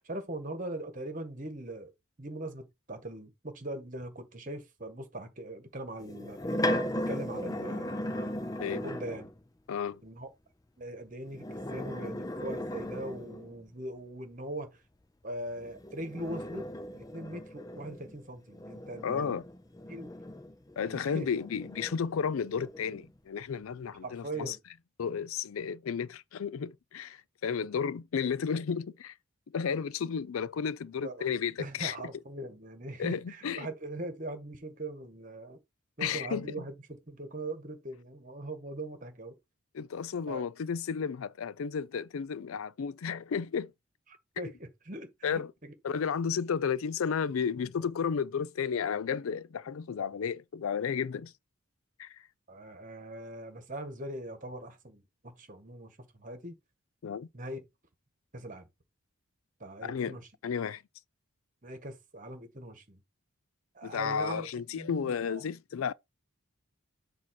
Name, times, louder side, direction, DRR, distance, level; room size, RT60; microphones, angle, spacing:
voice 1, 0.0-1.9 2.2-6.4 7.1-7.9 8.7-9.3 10.0-10.3 10.8-14.8 15.2-19.3 19.9-20.1 20.8-21.3 24.0-24.6 31.0-31.3 31.6-35.6 36.0-39.4 40.3-40.4 44.4-45.7 52.5-56.6 57.3-57.6 58.3-58.7 59.6-60.3 61.6-63.0 63.7-64.5 64.7-65.4, right 1 dB, 40° right, 1.4 m, -41 dB
sound 1, 6.0-9.3 11.3-13.6 15.6-20.8 21.3-23.1, left 1 dB, 15° left, 0.6 m, -37 dB
voice 2, 9.7-10.0 19.0-19.4 20.8-24.6 25.0-29.1 29.5-32.0 33.0-33.7 36.0-36.6 39.7-43.7 45.2-45.5 45.8-51.3 52.0-52.2 57.0-57.3 59.8-60.2 60.4-60.8 63.8-65.9, left 6 dB, 75° left, 0.4 m, -33 dB
7.4 x 2.8 x 5.8 m
head